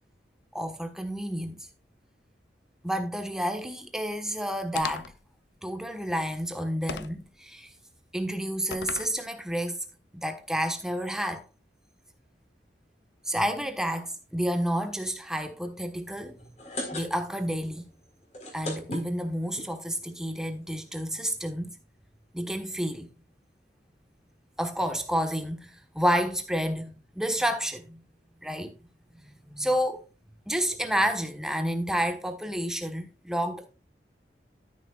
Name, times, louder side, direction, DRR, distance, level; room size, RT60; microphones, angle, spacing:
voice 1, 0.5-1.7 2.8-5.1 5.6-7.7 8.1-9.8 10.1-11.4 13.3-16.5 16.9-17.8 18.5-21.7 22.3-23.1 24.6-28.0 28.4-28.8 29.2-30.0 30.5-33.7, equal, 5° right, 1.2 m, -30 dB
sound 1, 4.8-5.2 6.9-7.3 8.7-9.2, left 6 dB, 75° left, 0.5 m, -36 dB
sound 2, 16.4-17.5 17.8-17.9 18.2-19.7 20.4-20.5 20.7-20.8 21.0-21.2, left 1 dB, 40° left, 4.1 m, -36 dB
12.0 x 10.0 x 2.4 m
head